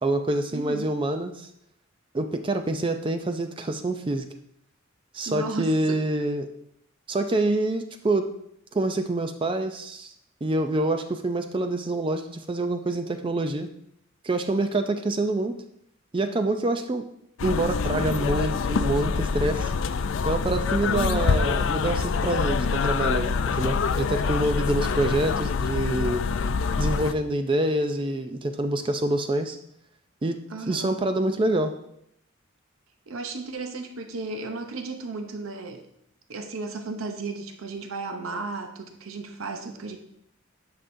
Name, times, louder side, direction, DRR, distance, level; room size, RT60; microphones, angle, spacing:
voice 1, 0.0-1.5 2.1-4.3 5.1-6.5 7.1-8.3 8.7-10.1 10.4-13.7 14.2-15.6 16.1-17.1 17.4-19.7 20.3-26.2 26.8-29.6 30.2-30.4 30.7-31.7, right 2 dB, 25° right, 7 dB, 0.4 m, -26 dB
voice 2, 0.5-0.9 5.2-6.0 20.9-21.3 30.5-31.0 33.1-35.9 36.3-40.0, right 3 dB, 80° right, 6 dB, 0.7 m, -34 dB
sound 1, 17.4-27.1, left 5 dB, 65° left, 0.4 m, -25 dB
10.0 x 5.9 x 2.6 m, 0.73 s
head